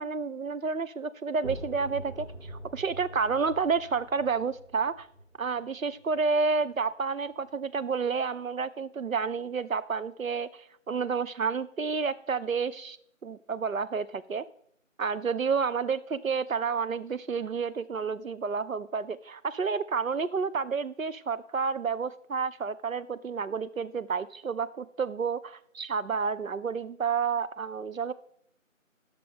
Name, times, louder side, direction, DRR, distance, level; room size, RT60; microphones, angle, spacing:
voice 1, 0.0-5.1 5.4-13.0 13.2-14.4 15.0-28.1, right 5 dB, 80° right, 14 dB, 0.7 m, -30 dB
sound 1, 1.4-6.9, right 1 dB, 50° right, 4.1 m, -44 dB
11.5 x 6.7 x 3.4 m, 0.66 s
figure-of-eight pair, 170°, 40 cm